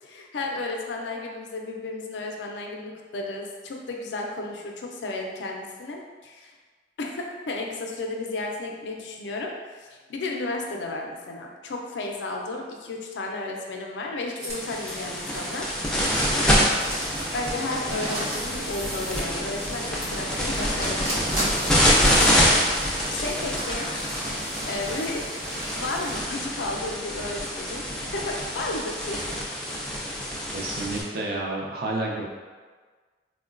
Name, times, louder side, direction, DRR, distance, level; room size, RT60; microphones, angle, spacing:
voice 1, 0.0-6.5 7.0-15.7 17.3-21.8 23.1-23.9 24.7-25.3 25.8-29.4, left 2 dB, 85° left, 1 dB, 0.4 m, -33 dB
sound 1, 14.4-26.2, right 1 dB, 85° right, 0.9 m, -36 dB
sound 2, 14.5-31.0, equal, 5° left, 0.4 m, -26 dB
voice 2, 30.5-32.2, right 2 dB, 60° right, -2 dB, 0.5 m, -30 dB
3.7 x 2.1 x 2.4 m, 1.4 s
head